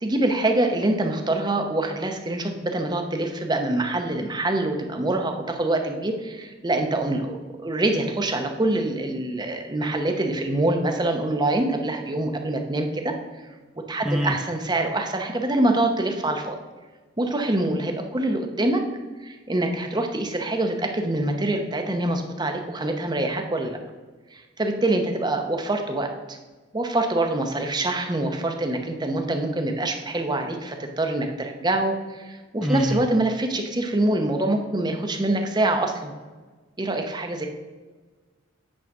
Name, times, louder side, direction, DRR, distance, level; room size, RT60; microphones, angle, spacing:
voice 1, 0.0-13.2 13.9-16.6 17.2-18.8 19.2-23.8 24.3-26.4 26.7-36.1 36.8-37.5, right 2 dB, 20° right, 4 dB, 0.8 m, -25 dB
voice 2, 14.0-14.4 32.6-33.0, equal, ahead, 2 dB, 0.3 m, -24 dB
8.8 x 3.9 x 6.0 m, 1.3 s
head